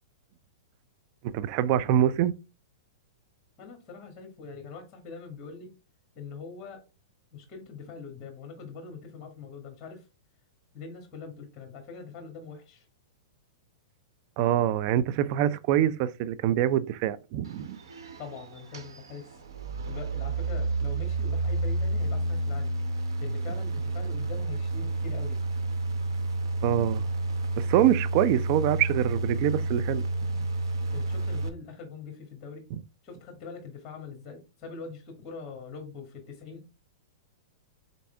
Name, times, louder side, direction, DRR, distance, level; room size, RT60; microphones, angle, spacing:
voice 1, 1.3-2.3 14.4-17.8 26.6-27.0 27.6-30.1 32.7-32.8, right 11 dB, 45° right, 0.5 m, -25 dB
voice 2, 3.6-5.7 6.1-6.8 7.3-10.0 10.7-12.8 18.2-19.3 19.9-22.7 23.2-25.4 27.8-27.9 30.9-32.7 33.0-36.6, left 5 dB, 25° left, 1.5 m, -43 dB
sound 1, 17.4-31.5, right 2 dB, 85° right, 0.9 m, -30 dB
4.0 x 3.5 x 3.3 m
hypercardioid pair, 135°, 2 cm